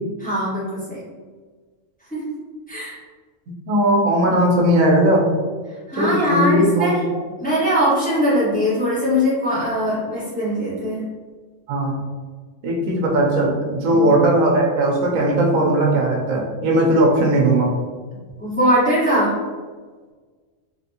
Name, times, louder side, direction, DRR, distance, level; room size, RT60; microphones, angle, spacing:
voice 1, 0.2-1.0 2.1-2.2 2.7-3.0 5.9-7.0 7.4-11.0 13.9-14.0 18.4-19.3, equal, 5° left, -11 dB, 1.2 m, -21 dB
voice 2, 3.7-5.2 5.9-7.2 11.7-12.0 12.6-17.7, right 1 dB, 85° right, -1 dB, 1.1 m, -18 dB
3.3 x 2.5 x 2.8 m, 1.5 s
omnidirectional pair, 1.4 m